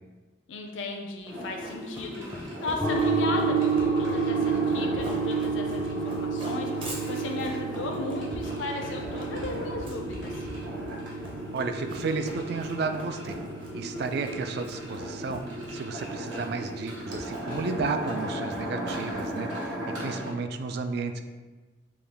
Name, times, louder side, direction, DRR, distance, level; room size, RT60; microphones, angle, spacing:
voice 1, 0.5-10.5, left 3 dB, 85° left, 2 dB, 0.4 m, -36 dB
Run, 1.3-19.9, equal, 25° right, 0.7 m, -43 dB
sound 1, 1.3-20.3, equal, 75° right, 1.1 m, -38 dB
sound 2, 2.8-16.5, right 4 dB, 10° left, 0.4 m, -31 dB
voice 2, 11.5-13.4 13.7-21.2, right 4 dB, 55° right, 7 dB, 0.3 m, -32 dB
5.4 x 2.3 x 3.3 m, 1.3 s
head